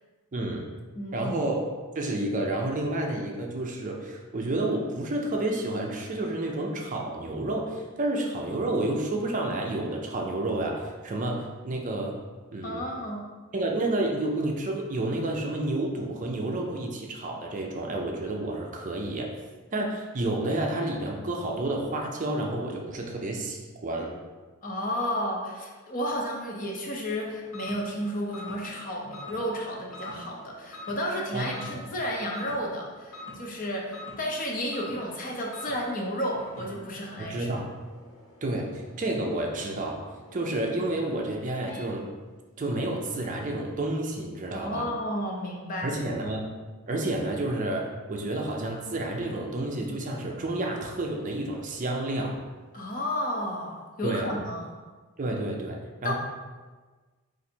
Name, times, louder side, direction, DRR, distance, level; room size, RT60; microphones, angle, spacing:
voice 1, 0.3-0.6 1.1-1.6 1.9-12.1 12.5-12.9 13.5-19.3 19.7-24.1 31.3-31.8 37.3-37.7 38.4-40.0 40.3-42.0 42.6-44.9 45.8-46.4 46.9-52.4 54.0-54.3 55.2-56.1, right 2 dB, 35° right, 1 dB, 0.4 m, -30 dB
voice 2, 0.9-1.4 12.6-13.2 24.6-37.5 44.5-45.9 52.7-54.7 56.0-56.1, equal, 35° left, -1 dB, 0.6 m, -32 dB
sound 1, 27.1-42.0, left 1 dB, 65° left, 1.0 m, -47 dB
4.0 x 2.6 x 4.3 m, 1.3 s
head